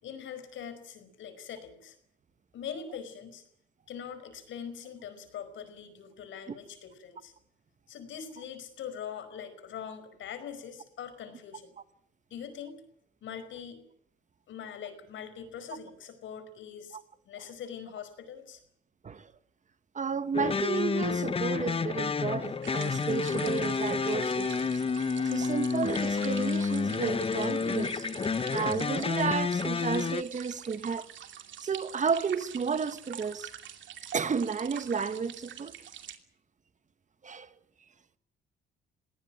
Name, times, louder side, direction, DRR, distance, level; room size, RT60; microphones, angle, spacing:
voice 1, 0.0-2.0 2.5-3.4 3.9-7.3 7.9-11.7 12.3-12.8 13.2-13.8 14.5-17.0 17.2-18.6, left 8 dB, 75° left, 5.1 m, -42 dB
voice 2, 19.9-28.1 28.5-31.1 31.6-33.5 34.1-35.7 37.2-37.5, right 5 dB, 40° right, 1.3 m, -32 dB
sound 1, 20.3-30.2, left 5 dB, 30° left, 0.9 m, -30 dB
sound 2, 22.6-36.2, right 9 dB, 70° right, 2.6 m, -46 dB
21.5 x 17.5 x 9.0 m
cardioid pair, 90°, 20 cm